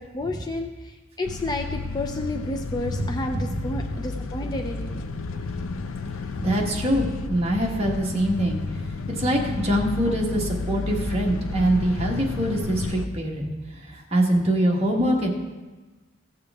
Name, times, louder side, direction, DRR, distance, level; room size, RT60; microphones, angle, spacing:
voice 1, 0.0-5.0, left 2 dB, 20° left, 3 dB, 0.4 m, -31 dB
sound 1, 1.2-13.1, left 3 dB, 75° left, 0.5 m, -32 dB
voice 2, 6.4-8.6 9.1-13.5 13.9-15.3, right 1 dB, 30° right, -2 dB, 1.4 m, -24 dB
16.0 x 6.5 x 3.5 m, 1.2 s
head